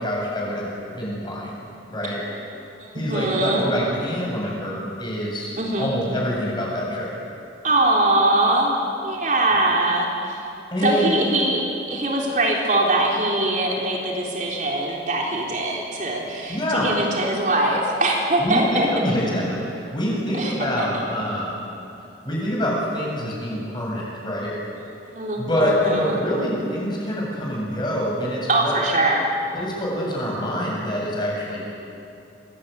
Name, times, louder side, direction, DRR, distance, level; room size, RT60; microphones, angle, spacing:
voice 1, 0.0-1.6 1.9-2.2 2.9-5.5 5.8-7.1 10.7-11.1 16.5-16.9 18.4-21.6 22.2-24.5 25.4-28.8 29.5-31.7, equal, 25° left, -3 dB, 7.9 m, -25 dB
voice 2, 2.8-3.7 5.6-5.9 7.6-8.7 9.0-10.4 10.8-11.6 11.9-19.0 20.3-21.0 25.1-26.2 28.5-29.3, right 2 dB, 45° right, -2 dB, 3.7 m, -22 dB
26.5 x 20.5 x 9.4 m, 2.7 s
head